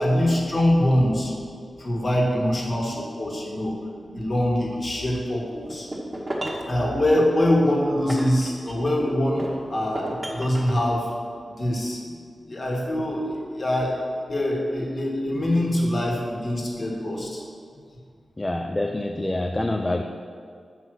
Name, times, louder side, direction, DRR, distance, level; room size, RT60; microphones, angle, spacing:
voice 1, 0.0-1.3 1.8-5.9 6.7-11.1 11.6-12.1 12.4-17.4, left 1 dB, 35° left, -2 dB, 1.6 m, -24 dB
sound 1, 5.7-6.7 7.4-9.0 9.4-10.8, right 1 dB, 20° right, 1.2 m, -33 dB
voice 2, 18.4-20.0, left 1 dB, 15° left, 4 dB, 0.4 m, -26 dB
7.9 x 5.5 x 6.0 m, 2.2 s
wide cardioid pair, 160°, 0 cm